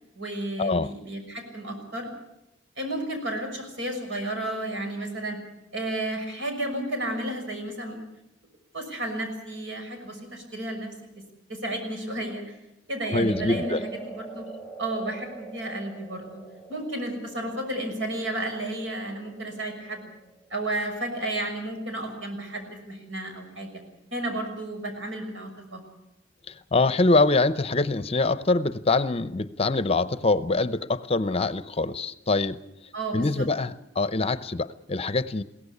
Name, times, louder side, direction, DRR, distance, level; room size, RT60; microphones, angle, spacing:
voice 1, 0.1-2.1 2.8-5.4 5.7-8.0 8.7-10.9 11.5-12.4 12.9-14.5 14.8-16.4 16.7-20.1 20.5-23.7 24.1-25.8 32.9-33.5, right 1 dB, 75° right, 4 dB, 6.2 m, -32 dB
voice 2, 13.1-13.8 26.5-32.6 33.1-35.4, left 3 dB, 30° left, 14 dB, 0.7 m, -24 dB
sound 1, 13.2-21.6, right 4 dB, 15° right, 3.1 m, -43 dB
22.0 x 17.0 x 8.4 m, 0.87 s
head